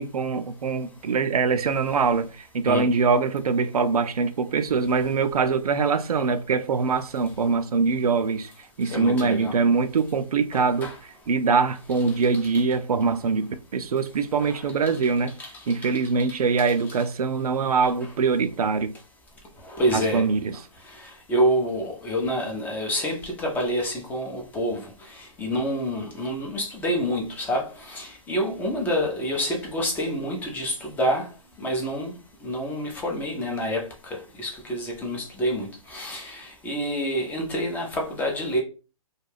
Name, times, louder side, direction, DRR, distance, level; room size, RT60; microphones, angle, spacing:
voice 1, 0.0-8.5 8.8-10.9 11.3-15.3 15.7-18.9 19.9-20.6, right 5 dB, 80° right, 0.4 m, -23 dB
voice 2, 8.8-9.5 10.5-10.9 12.5-12.6 14.4-14.7 15.4-15.5 15.8-15.9 19.6-20.2 21.0-31.3 31.6-32.1 32.4-38.6, equal, 10° left, 0.5 m, -28 dB
2.3 x 2.2 x 3.2 m
hypercardioid pair, 135°, 19 cm